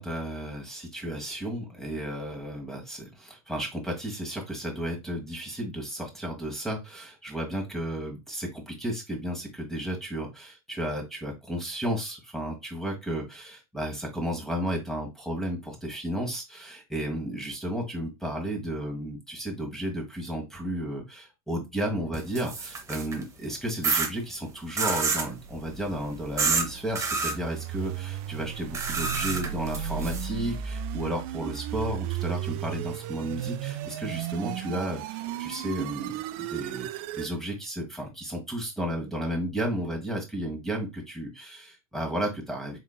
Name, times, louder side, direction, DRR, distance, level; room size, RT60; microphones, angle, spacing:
voice 1, 0.0-36.9 37.2-42.8, equal, ahead, 3 dB, 1.4 m, -33 dB
sound 1, 22.1-23.2 23.8-24.1 24.8-25.3 26.4-26.7 27.0-27.3 28.7-30.3, right 4 dB, 15° right, 0.8 m, -28 dB
sound 2, 25.2-37.3, right 10 dB, 45° right, 0.4 m, -35 dB
3.9 x 3.6 x 2.3 m, 0.22 s
hypercardioid pair, 115°, 19 cm